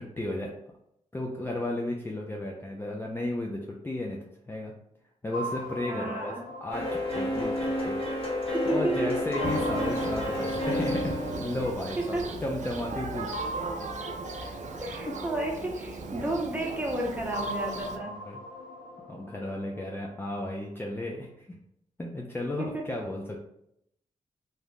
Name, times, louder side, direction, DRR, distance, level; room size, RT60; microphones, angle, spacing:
voice 1, 0.2-0.5 1.1-4.7 5.2-6.3 6.6-8.0 8.4-13.3 14.3-14.8 18.0-18.4 19.1-21.6 22.0-23.4, left 1 dB, 15° left, -1 dB, 0.4 m, -34 dB
sound 1, 5.3-8.7 9.3-12.3 13.3-16.4 17.3-20.4, equal, 85° left, 0.7 m, -40 dB
voice 2, 5.9-6.4 8.5-9.2 12.0-12.4 14.8-18.2 22.6-22.8, right 1 dB, 10° right, -1 dB, 0.9 m, -32 dB
sound 2, 6.7-12.5, left 1 dB, 40° left, 1.5 m, -30 dB
Thunder, 9.4-18.0, right 3 dB, 55° right, 0.5 m, -38 dB
2.7 x 2.4 x 3.5 m, 0.77 s
cardioid pair, 65°, 14 cm